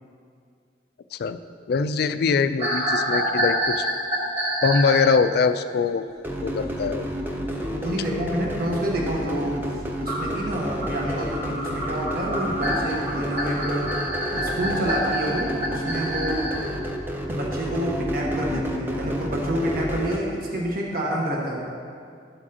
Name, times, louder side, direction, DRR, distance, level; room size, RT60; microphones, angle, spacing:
voice 1, 1.7-3.9 4.6-6.0 6.4-7.1, left 5 dB, 60° left, 11 dB, 0.3 m, -22 dB
sound 1, 2.6-5.2 10.0-16.6, equal, 35° right, 1.8 m, -27 dB
sound 2, 6.2-20.2, equal, 10° right, 0.6 m, -30 dB
voice 2, 7.6-13.9 14.3-16.5 17.3-21.6, right 1 dB, 55° right, -2 dB, 1.2 m, -28 dB
12.0 x 7.2 x 2.8 m, 2.3 s
head